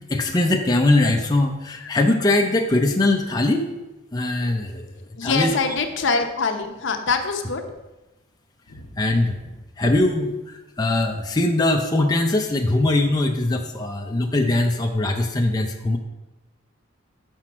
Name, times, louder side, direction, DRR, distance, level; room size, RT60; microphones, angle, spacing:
voice 1, 0.1-3.7 4.1-4.9 5.2-5.5 9.0-9.4 9.8-16.0, left 2 dB, 20° left, 2 dB, 0.5 m, -21 dB
voice 2, 5.2-7.6 8.7-9.0, left 4 dB, 65° left, 5 dB, 0.8 m, -24 dB
5.9 x 4.3 x 6.1 m, 1.0 s
head